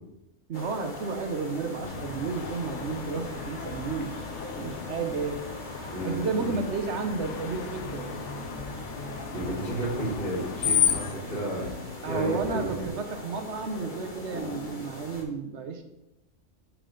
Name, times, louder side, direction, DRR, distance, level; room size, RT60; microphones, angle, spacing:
sound 1, 0.5-15.2, left 1 dB, 40° left, 1.4 m, -41 dB
voice 1, 0.5-5.4 6.0-8.2 12.0-15.8, right 4 dB, 65° right, 7 dB, 1.0 m, -32 dB
Screech, 1.8-11.1, left 9 dB, 70° left, 0.9 m, -34 dB
voice 2, 5.9-6.5 9.3-11.7 12.0-12.9, right 1 dB, 45° right, -9 dB, 2.8 m, -32 dB
sound 2, 7.8-12.9, left 2 dB, 90° left, 1.4 m, -41 dB
8.7 x 4.8 x 3.8 m, 0.90 s
omnidirectional pair, 1.4 m